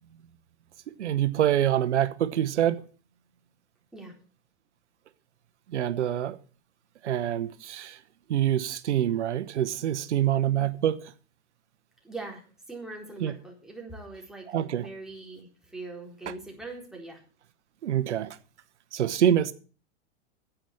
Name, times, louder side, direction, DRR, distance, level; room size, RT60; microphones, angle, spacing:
voice 1, 1.0-2.8 5.7-6.4 7.0-8.0 8.3-11.1 13.2-13.3 14.5-14.9 17.8-18.4 18.9-19.5, right 11 dB, 90° right, 1.0 m, -26 dB
voice 2, 12.0-17.2, right 2 dB, ahead, 4.3 m, -42 dB
10.0 x 8.0 x 8.4 m
hypercardioid pair, 125°, 34 cm